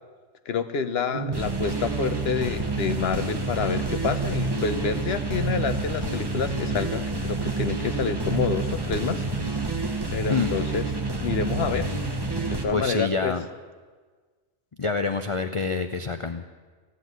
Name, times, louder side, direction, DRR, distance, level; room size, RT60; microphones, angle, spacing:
voice 1, 0.5-9.2 10.1-10.8 11.2-11.9 12.5-13.3, left 5 dB, 60° left, 10 dB, 1.1 m, -28 dB
sound 1, 1.1-12.7, right 3 dB, 20° right, 1.3 m, -28 dB
voice 2, 12.7-13.4 14.8-16.5, left 4 dB, 35° left, 8 dB, 0.5 m, -27 dB
15.5 x 8.2 x 9.3 m, 1.4 s
omnidirectional pair, 1.2 m